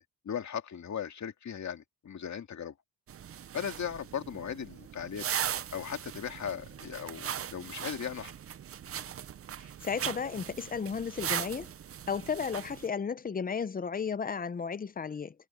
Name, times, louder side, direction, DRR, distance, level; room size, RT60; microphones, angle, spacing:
voice 1, 0.0-2.7 3.5-5.3 5.7-8.3, left 8 dB, 45° left, 2.1 m, -38 dB
sound 1, 3.1-12.9, right 9 dB, 35° right, 0.5 m, -39 dB
voice 2, 9.8-11.7 12.1-15.3, left 6 dB, 25° left, 0.5 m, -34 dB
wide cardioid pair, 155°, 38 cm